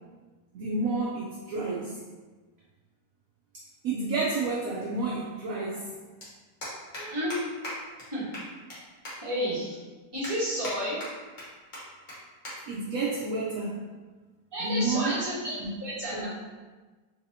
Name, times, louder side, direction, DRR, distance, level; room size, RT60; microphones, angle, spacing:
voice 1, 0.5-2.0 3.8-5.9 12.7-13.8 14.6-15.2 15.6-15.7 16.1-16.3, right 3 dB, 70° right, -3 dB, 0.8 m, -30 dB
sound 1, 6.2-6.3 6.6-7.0 7.3-7.4 7.6-7.7 8.0-8.1 8.3-8.8 9.0-9.1 9.6-9.7 10.2-10.7 11.0-11.4 11.7-11.8 12.1-12.2 12.4-12.5 12.9-13.1 13.9-14.1, left 1 dB, 35° left, 1.0 m, -38 dB
voice 2, 7.0-7.4 8.1-8.3 9.2-9.8 10.1-11.0 14.5-16.3, equal, 15° right, -10 dB, 1.2 m, -31 dB
3.9 x 2.7 x 2.7 m, 1.3 s
omnidirectional pair, 1.9 m